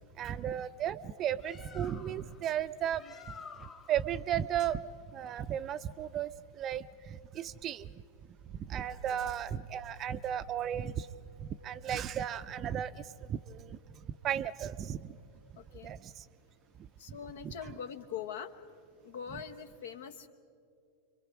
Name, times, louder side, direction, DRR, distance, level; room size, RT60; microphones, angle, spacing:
voice 1, 0.2-3.0 3.9-4.8 5.1-7.9 8.5-11.1 11.4-13.8 14.2-15.2 15.8-16.2 16.8-17.2 17.4-17.7 19.3-19.4, right 10 dB, 30° right, 14 dB, 0.5 m, -35 dB
Bird, 1.1-6.3, left 5 dB, 25° left, 1.0 m, -53 dB
Thunderstorm, 8.9-16.3, right 4 dB, 80° right, 0.8 m, -55 dB
voice 2, 15.6-16.0 17.0-18.5 19.0-20.3, left 8 dB, 60° left, 9 dB, 1.1 m, -43 dB
30.0 x 23.5 x 4.9 m, 2.4 s
figure-of-eight pair, 90°, 0 cm